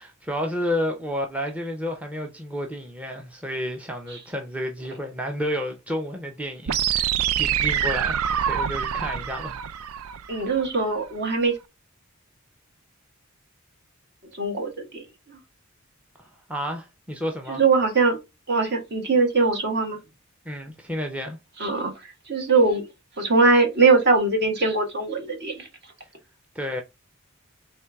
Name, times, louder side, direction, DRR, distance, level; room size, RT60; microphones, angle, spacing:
voice 1, 0.0-9.6 16.5-17.6 20.5-21.4 26.5-26.8, equal, 5° right, 0.6 m, -31 dB
sound 1, 6.7-10.7, right 9 dB, 80° right, 0.4 m, -25 dB
voice 2, 10.3-11.5 14.4-15.0 17.5-18.2 18.5-20.0 21.6-21.9 22.3-22.8 23.2-25.7, right 3 dB, 50° right, 1.6 m, -21 dB
4.3 x 3.1 x 3.4 m
head